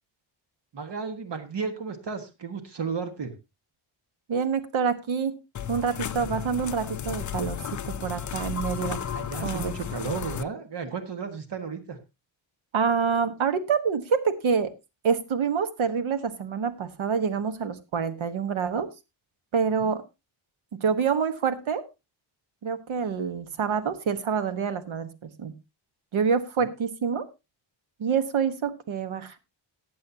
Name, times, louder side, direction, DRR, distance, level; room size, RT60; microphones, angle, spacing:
voice 1, 0.7-3.3 9.1-12.0 19.8-19.9 26.6-26.7, right 5 dB, 60° right, 7 dB, 1.6 m, -34 dB
voice 2, 4.3-5.3 5.7-9.0 9.4-9.7 12.7-14.7 15.0-18.9 19.5-20.0 20.7-21.8 22.6-25.5 26.1-27.3 28.0-29.4, right 6 dB, 80° right, 10 dB, 1.4 m, -27 dB
sound 1, 5.5-10.4, left 9 dB, 40° left, 0.5 m, -33 dB
18.5 x 7.9 x 2.8 m, 0.25 s
wide cardioid pair, 150°, 47 cm